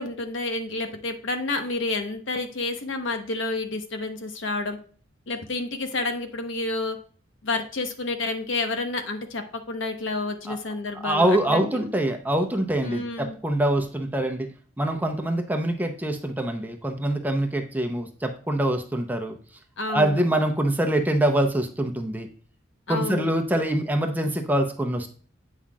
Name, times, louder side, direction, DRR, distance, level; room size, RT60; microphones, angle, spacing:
voice 1, 0.0-4.8 5.3-7.0 7.4-11.9 12.8-13.4 19.8-20.3 22.9-23.3, left 3 dB, 70° left, 6 dB, 1.0 m, -29 dB
voice 2, 11.0-14.5 14.8-19.4 19.9-22.3 22.9-25.1, right 1 dB, 10° right, 4 dB, 0.7 m, -24 dB
8.4 x 5.7 x 2.4 m, 0.43 s
head